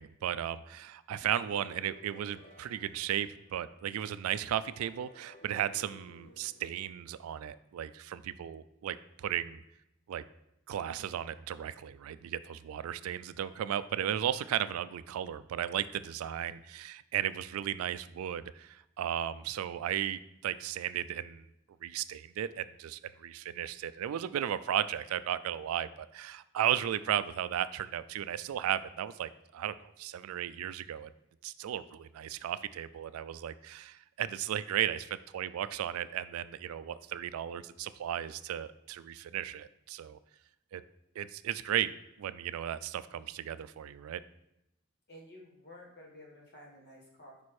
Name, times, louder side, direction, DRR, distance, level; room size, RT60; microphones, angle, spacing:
voice 1, 0.0-9.6 10.1-10.2 10.7-21.5 21.8-31.1 31.4-40.2 40.7-40.8 41.2-41.9 42.2-44.2, right 10 dB, 85° right, 16 dB, 0.3 m, -35 dB
sound 1, 1.2-4.1 4.7-7.6, left 2 dB, 25° left, 0.7 m, -57 dB
voice 2, 45.1-47.4, left 1 dB, 50° left, -2 dB, 1.6 m, -52 dB
5.2 x 4.2 x 4.7 m, 0.84 s
head